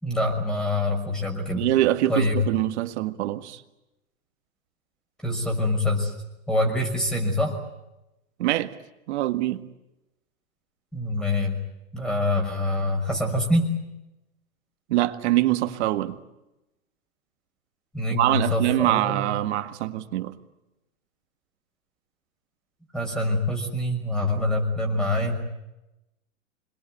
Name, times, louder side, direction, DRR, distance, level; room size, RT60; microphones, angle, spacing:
voice 1, 0.0-1.7 2.1-2.4 5.2-6.1 6.5-7.6 10.9-11.6 11.9-13.8 17.9-19.3 22.9-25.4, left 1 dB, ahead, 2 dB, 6.0 m, -25 dB
voice 2, 1.5-3.6 8.4-8.7 9.1-9.6 14.9-16.2 18.1-20.3, right 15 dB, 50° right, 10 dB, 1.8 m, -24 dB
26.5 x 21.5 x 9.1 m, 0.95 s
hypercardioid pair, 135°, 42 cm